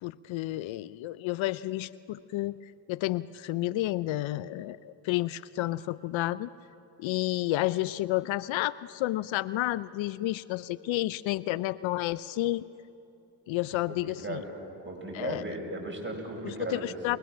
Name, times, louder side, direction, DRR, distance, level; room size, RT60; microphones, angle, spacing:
voice 1, 0.0-2.6 2.9-6.5 7.0-12.6 13.5-14.4 15.1-15.4 16.4-17.2, left 16 dB, 70° left, 18 dB, 0.6 m, -31 dB
voice 2, 13.9-14.5 14.8-17.2, right 2 dB, 25° right, 1 dB, 5.8 m, -37 dB
22.0 x 21.0 x 6.2 m, 2.8 s
supercardioid pair, 50°, 48 cm